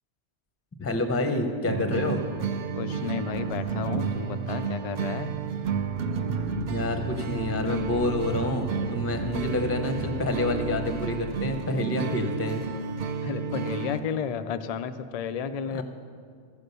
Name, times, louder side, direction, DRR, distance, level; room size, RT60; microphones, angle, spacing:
voice 1, 0.8-2.2 6.7-12.6 15.7-15.8, left 1 dB, 15° left, 6 dB, 0.6 m, -28 dB
sound 1, 1.7-14.0, right 5 dB, 55° right, 0.6 m, -31 dB
voice 2, 2.7-5.4 13.2-15.8, left 7 dB, 60° left, 11 dB, 0.4 m, -32 dB
sound 2, 6.3-11.6, equal, 85° right, 1.0 m, -37 dB
15.0 x 5.1 x 6.7 m, 2.1 s
omnidirectional pair, 1.2 m